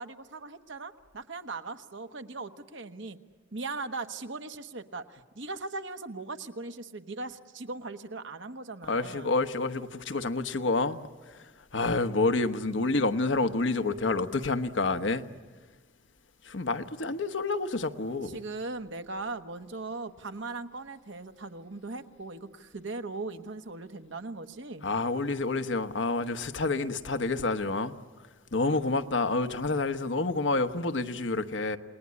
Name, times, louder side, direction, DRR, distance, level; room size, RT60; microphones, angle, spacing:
voice 1, 0.0-3.2 3.5-9.3 18.2-24.9, right 3 dB, 75° right, 1.3 m, -39 dB
voice 2, 8.9-15.2 16.4-18.4 24.8-31.8, left 3 dB, 75° left, 1.1 m, -29 dB
29.0 x 20.0 x 9.8 m
head